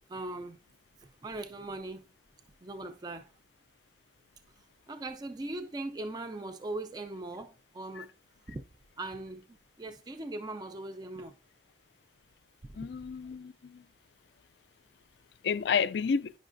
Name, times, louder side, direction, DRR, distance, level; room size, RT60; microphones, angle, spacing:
voice 1, 0.1-0.6 1.0-2.1 2.6-3.3 4.6-8.1 8.5-8.6 9.0-11.4 12.6-12.9, right 2 dB, 20° right, 0.4 m, -40 dB
voice 2, 12.8-13.8 15.4-16.3, left 6 dB, 70° left, 0.4 m, -30 dB
9.9 x 5.5 x 2.6 m
head